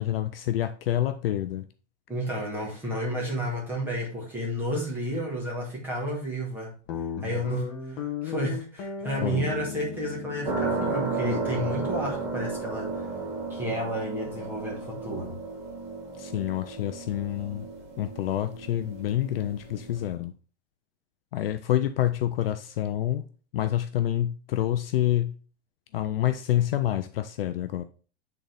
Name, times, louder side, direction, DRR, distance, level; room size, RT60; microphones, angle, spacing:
voice 1, 0.0-1.7 9.2-9.5 16.2-17.7 18.0-20.3 21.3-23.2 23.5-25.3 25.9-27.8, left 12 dB, 55° left, 0.4 m, -27 dB
voice 2, 2.1-6.7 7.2-13.0 13.5-15.4, equal, 5° right, 1.5 m, -31 dB
Guitar, 6.9-13.6, left 8 dB, 25° left, 0.8 m, -38 dB
sound 1, 10.4-20.1, right 3 dB, 30° right, 1.8 m, -33 dB
8.4 x 3.9 x 3.4 m
supercardioid pair, 180°, 36 cm